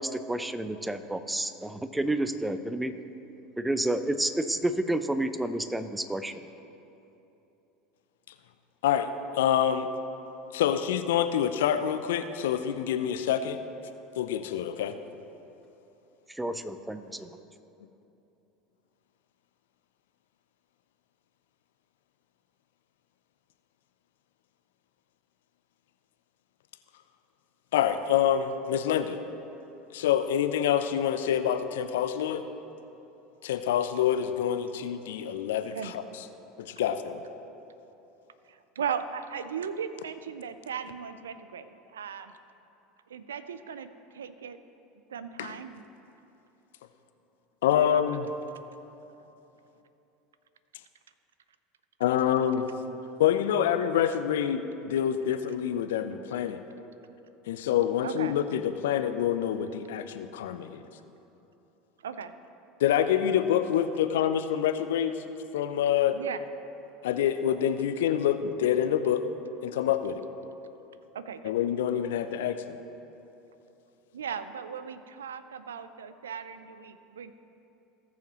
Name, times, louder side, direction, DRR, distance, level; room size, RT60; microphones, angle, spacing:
voice 1, 0.0-2.9 3.6-6.4 16.3-17.3, right 1 dB, 5° right, 11 dB, 0.6 m, -30 dB
voice 2, 9.3-9.9 10.5-13.6 14.2-14.9 27.7-29.2 29.9-32.4 33.4-36.2 36.6-37.2 45.4-45.5 47.6-48.3 52.0-52.7 53.2-56.6 57.5-60.8 62.8-65.2 65.5-66.2 67.0-69.2 69.6-70.2 71.4-72.8, left 9 dB, 70° left, 10 dB, 0.5 m, -26 dB
voice 3, 38.5-42.3 43.1-43.9 44.1-44.6 45.1-45.8 58.0-58.3 62.0-62.3 66.1-66.4 71.1-71.5 74.1-77.3, right 7 dB, 80° right, 12 dB, 0.4 m, -37 dB
18.5 x 7.1 x 3.0 m, 3.0 s
figure-of-eight pair, 75°, 0 cm